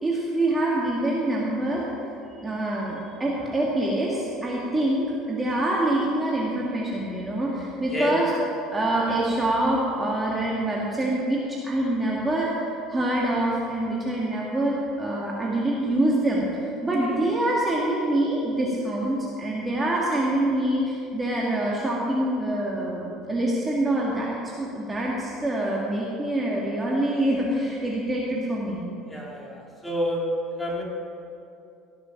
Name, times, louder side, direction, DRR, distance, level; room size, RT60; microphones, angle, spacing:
voice 1, 0.0-1.8 2.4-8.3 8.7-16.4 16.8-28.8, right 1 dB, 15° right, -5 dB, 1.9 m, -25 dB
voice 2, 29.1-30.3 30.6-30.8, left 1 dB, 10° left, -3 dB, 3.1 m, -29 dB
17.0 x 6.7 x 5.9 m, 2.6 s
supercardioid pair, 95°, 0 cm